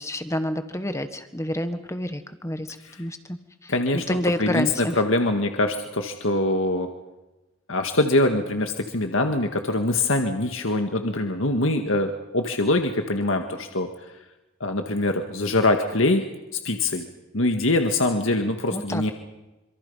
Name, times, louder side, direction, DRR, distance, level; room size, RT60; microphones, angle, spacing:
voice 1, 0.0-2.7 3.0-3.4 3.6-3.7 4.1-5.0 18.7-19.1, left 1 dB, 15° left, 9 dB, 1.5 m, -28 dB
voice 2, 3.7-6.9 7.7-13.9 14.6-16.3 16.5-17.1 17.3-19.1, left 2 dB, 70° left, 5 dB, 1.9 m, -23 dB
27.0 x 26.5 x 5.7 m, 1.1 s
head